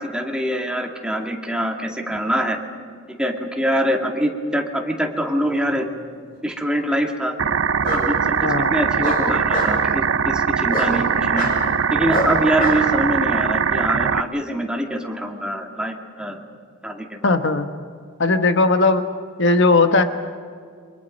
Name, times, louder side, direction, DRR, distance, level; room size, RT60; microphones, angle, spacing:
voice 1, 0.0-2.6 3.1-5.9 6.4-7.3 7.9-11.5 11.9-16.4 16.8-17.3, equal, 5° right, 2 dB, 2.2 m, -24 dB
Bark, 5.7-6.3 7.8-8.0 9.0-9.7 10.7-10.9 11.4-11.6 12.1-12.8, left 1 dB, 45° left, 7.6 m, -25 dB
sound 1, 7.4-14.2, right 6 dB, 75° right, 0.6 m, -21 dB
voice 2, 8.4-8.7 17.2-17.7 18.2-19.0 19.4-20.0, left 3 dB, 65° left, 8 dB, 1.2 m, -17 dB
29.0 x 25.0 x 5.3 m, 2.1 s
head